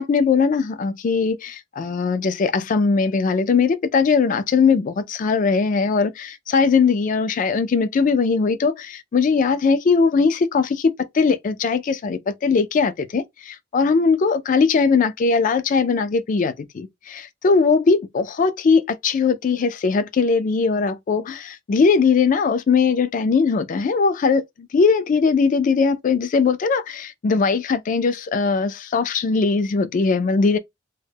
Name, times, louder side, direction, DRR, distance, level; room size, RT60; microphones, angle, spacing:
voice 1, 0.0-30.6, left 5 dB, 40° left, 0.3 m, -20 dB
2.1 x 2.0 x 3.2 m
head